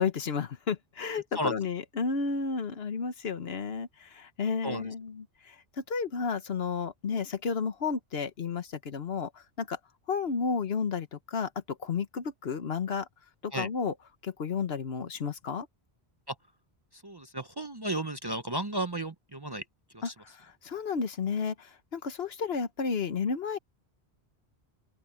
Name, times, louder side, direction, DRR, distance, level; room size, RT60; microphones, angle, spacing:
voice 1, 0.0-9.8 10.1-13.1 13.4-13.9 14.2-15.7 20.0-23.6, left 5 dB, 65° left, 1.3 m, -32 dB
voice 2, 17.0-19.6 20.0-20.1, right 1 dB, 25° right, 0.7 m, -33 dB
open air
omnidirectional pair, 1.1 m